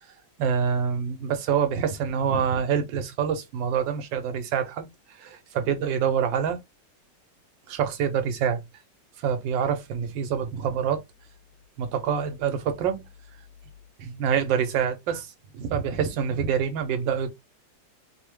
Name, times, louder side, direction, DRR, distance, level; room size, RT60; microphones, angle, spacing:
voice 1, 0.4-4.9 5.2-6.6 7.7-8.6 9.2-11.0 11.8-13.0 14.0-15.3 15.5-17.3, right 7 dB, 85° right, 1.4 m, -26 dB
3.4 x 2.0 x 3.0 m
omnidirectional pair, 2.0 m